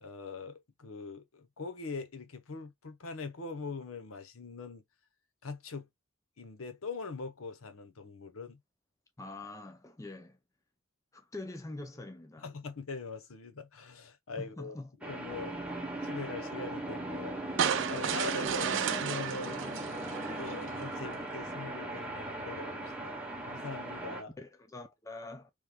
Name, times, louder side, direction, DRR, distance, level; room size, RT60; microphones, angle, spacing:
voice 1, 0.0-4.8 5.4-5.9 6.4-8.6 12.4-14.8 15.0-19.7 20.1-23.2 23.5-24.4, left 4 dB, 75° left, 0.8 m, -42 dB
voice 2, 9.2-10.4 11.1-12.5 14.4-14.9 18.4-18.9 24.4-25.5, left 2 dB, 15° left, 0.4 m, -44 dB
sound 1, 15.0-24.2, right 1 dB, 5° right, 0.9 m, -39 dB
sound 2, 17.6-20.8, right 8 dB, 60° right, 0.5 m, -33 dB
3.5 x 3.1 x 2.2 m
head